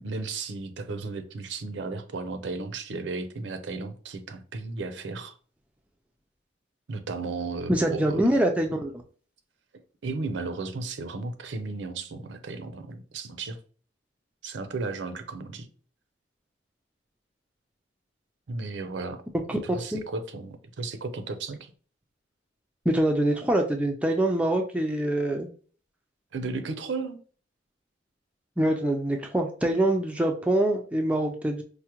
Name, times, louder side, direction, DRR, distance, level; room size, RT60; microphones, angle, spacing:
voice 1, 0.0-5.4 6.9-8.3 10.0-13.6 14.4-15.7 18.5-19.2 19.6-21.7 26.3-27.2, right 3 dB, 75° right, 0.5 m, -34 dB
voice 2, 7.7-8.9 19.9-20.0 22.9-25.5 28.6-31.6, right 1 dB, 5° right, 0.3 m, -24 dB
4.6 x 2.1 x 2.9 m
head